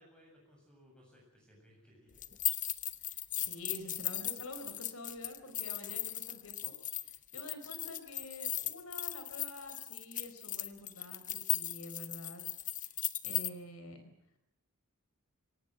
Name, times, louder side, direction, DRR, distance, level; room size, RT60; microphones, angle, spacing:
voice 1, 0.0-2.2, equal, 5° left, -1 dB, 7.6 m, -62 dB
sound 1, 2.2-13.5, left 13 dB, 35° left, 1.0 m, -37 dB
voice 2, 3.0-6.7 7.0-12.4 13.2-14.0, left 1 dB, 65° left, 8 dB, 4.5 m, -48 dB
24.0 x 18.0 x 8.0 m, 0.83 s
head